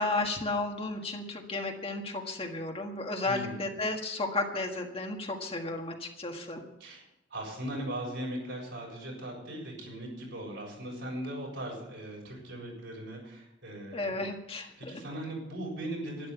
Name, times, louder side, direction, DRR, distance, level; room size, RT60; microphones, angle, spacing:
voice 1, 0.0-6.6 13.9-14.9, left 2 dB, 30° left, 2 dB, 1.6 m, -33 dB
voice 2, 3.2-3.7 6.8-7.0 7.3-14.2 14.8-16.3, right 1 dB, 70° right, -2 dB, 7.0 m, -39 dB
12.0 x 11.5 x 7.1 m, 0.88 s
head